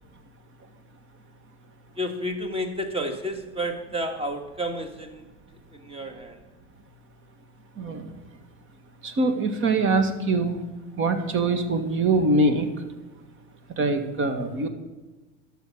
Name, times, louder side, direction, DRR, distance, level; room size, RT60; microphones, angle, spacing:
voice 1, 2.0-5.3 5.7-6.4, equal, 15° right, 7 dB, 1.7 m, -31 dB
voice 2, 7.8-8.1 9.0-10.6 11.0-12.7 13.8-14.7, right 2 dB, 35° right, 8 dB, 1.8 m, -23 dB
12.5 x 6.6 x 7.2 m, 1.2 s
supercardioid pair, 105°, 33 cm